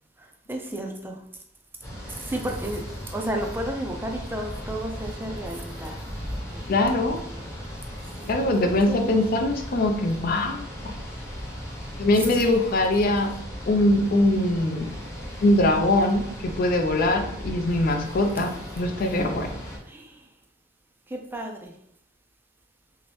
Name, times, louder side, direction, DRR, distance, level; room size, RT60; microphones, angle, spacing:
voice 1, 0.2-1.2 2.0-6.0 6.3-6.6 8.2-9.2 12.1-12.6 19.8-20.3 21.1-21.7, right 1 dB, 10° right, 2 dB, 0.4 m, -33 dB
sound 1, 1.8-19.8, equal, 15° left, 0.8 m, -37 dB
voice 2, 6.7-7.2 8.3-10.9 12.0-13.4 13.7-14.9 15.4-19.5, left 1 dB, 55° left, 5 dB, 0.4 m, -22 dB
3.0 x 2.8 x 3.1 m, 0.71 s
head